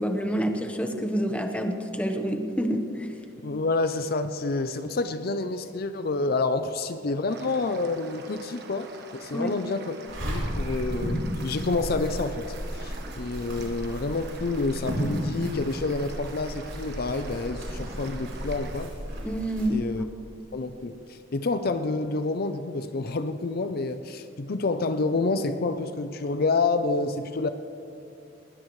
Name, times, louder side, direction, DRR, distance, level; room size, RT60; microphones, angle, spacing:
voice 1, 0.0-3.1 9.3-9.5 19.2-19.8, equal, 5° left, 4 dB, 1.1 m, -28 dB
voice 2, 3.4-9.9 10.2-12.4 12.7-18.9 19.7-20.0 20.5-27.5, left 3 dB, 50° left, 10 dB, 0.5 m, -28 dB
sound 1, 7.3-18.9, right 4 dB, 55° right, 1.4 m, -46 dB
sound 2, 10.1-19.7, equal, 85° right, 4.6 m, -34 dB
20.0 x 19.5 x 3.2 m, 2.7 s
head